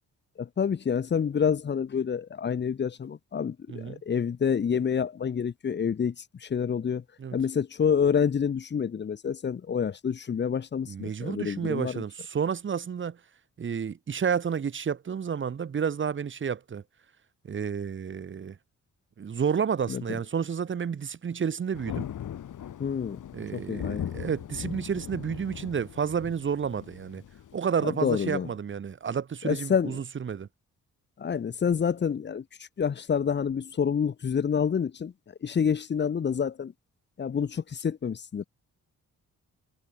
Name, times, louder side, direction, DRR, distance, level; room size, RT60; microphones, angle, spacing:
voice 1, 0.4-6.1 6.4-7.0 7.3-12.0 19.9-20.0 22.8-23.2 23.5-24.1 27.8-28.5 29.4-29.9 31.2-32.4 32.8-35.1 35.4-36.7 37.2-38.4, left 7 dB, 35° left, 0.7 m, -28 dB
voice 2, 3.7-4.0 7.2-7.4 10.9-13.2 13.6-16.8 17.4-18.6 19.2-22.1 23.3-27.2 27.5-30.5, right 7 dB, 40° right, 0.9 m, -30 dB
Thunder, 21.7-27.6, left 10 dB, 70° left, 1.5 m, -39 dB
cardioid pair, 85°, 32 cm